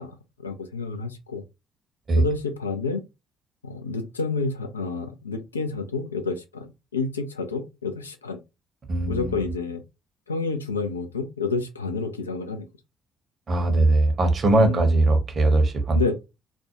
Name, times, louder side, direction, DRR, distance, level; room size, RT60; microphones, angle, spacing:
voice 1, 0.0-1.4 2.2-3.0 3.6-8.4 9.1-9.8 10.3-12.7 14.5-14.9 15.9-16.1, left 4 dB, 85° left, 0.3 m, -29 dB
voice 2, 8.9-9.4 13.5-16.1, right 2 dB, 40° right, 0.8 m, -20 dB
2.4 x 2.1 x 2.8 m
figure-of-eight pair, 45°, 0 cm